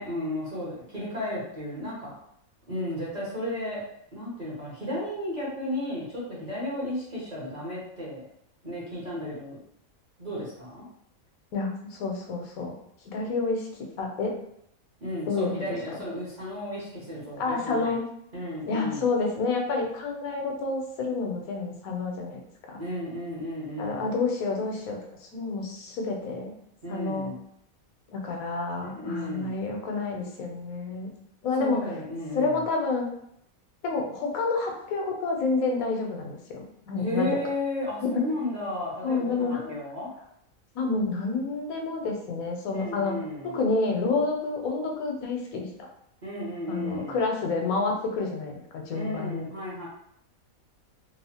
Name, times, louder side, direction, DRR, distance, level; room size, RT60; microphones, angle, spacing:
voice 1, 0.0-2.1 2.7-3.8 4.1-8.2 8.6-9.6 10.2-10.9 15.0-18.0 18.3-19.0 22.8-24.1 26.8-27.4 28.8-29.5 31.6-32.6 37.0-40.1 42.7-43.6 46.2-47.2 48.9-49.9, left 1 dB, 40° right, -7 dB, 0.7 m, -33 dB
voice 2, 11.5-12.7 13.1-13.7 14.0-14.3 15.3-15.8 17.4-18.1 18.7-22.4 22.7-22.8 23.8-26.5 26.9-27.3 28.1-31.1 31.4-31.9 32.3-33.1 33.8-37.4 38.0-38.2 39.0-39.8 40.7-43.2 43.4-45.7 46.7-49.5, left 3 dB, 75° left, 1 dB, 1.0 m, -29 dB
2.9 x 2.0 x 2.7 m, 0.72 s
omnidirectional pair, 1.5 m